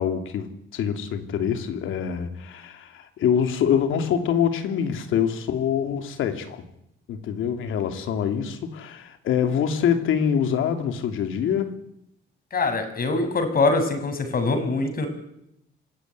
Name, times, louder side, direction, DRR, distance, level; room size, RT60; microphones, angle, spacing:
voice 1, 0.0-6.6 7.1-11.7, left 8 dB, 80° left, 7 dB, 3.0 m, -25 dB
voice 2, 12.5-15.1, left 3 dB, 50° left, 8 dB, 6.6 m, -23 dB
26.0 x 16.5 x 9.7 m, 0.80 s
cardioid pair, 90°, 20 cm